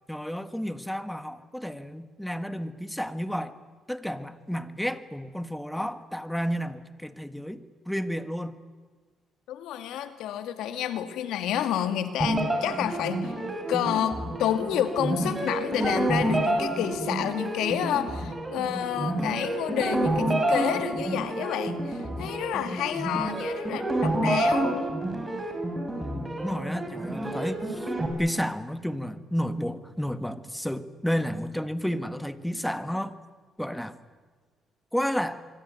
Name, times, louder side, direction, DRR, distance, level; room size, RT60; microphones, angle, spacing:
voice 1, 0.1-3.5 3.9-8.6 26.0-27.9 28.2-33.1 33.6-34.0 34.9-35.4, equal, 5° left, 11 dB, 1.6 m, -31 dB
voice 2, 9.5-13.3 13.7-24.7, left 10 dB, 90° left, 9 dB, 2.3 m, -29 dB
sound 1, 12.2-28.1, right 1 dB, 20° right, 6.3 m, -29 dB
25.5 x 23.5 x 9.5 m, 1.5 s
cardioid pair, 90°, 0 cm